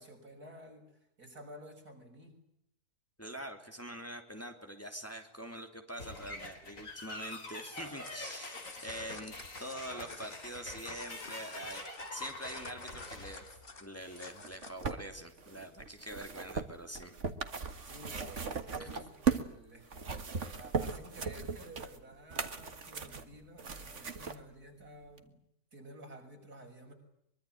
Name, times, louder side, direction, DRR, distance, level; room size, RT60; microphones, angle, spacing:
voice 1, 0.0-2.4 17.8-25.4 25.7-26.9, right 1 dB, 85° right, 3 dB, 7.0 m, -52 dB
voice 2, 3.2-11.8 12.1-13.4 13.8-17.1 18.8-18.9, right 1 dB, 10° left, 5 dB, 3.2 m, -45 dB
sound 1, 6.0-14.3, left 2 dB, 60° left, 4.3 m, -45 dB
sound 2, 7.7-15.0, left 3 dB, 35° left, 2.2 m, -50 dB
sound 3, 14.4-19.5 19.9-24.4 25.2-25.3, right 5 dB, 50° right, 2.1 m, -37 dB
24.0 x 23.0 x 8.8 m, 0.79 s
omnidirectional pair, 1.6 m